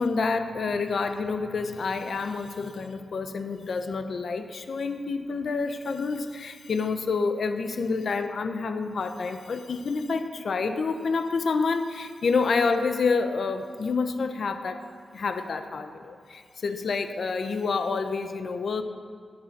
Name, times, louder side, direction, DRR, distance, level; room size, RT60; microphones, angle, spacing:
voice 1, 0.0-14.8 15.1-18.8, left 4 dB, 55° left, 8 dB, 0.7 m, -28 dB
13.0 x 9.6 x 5.9 m, 2.1 s
wide cardioid pair, 155°, 0 cm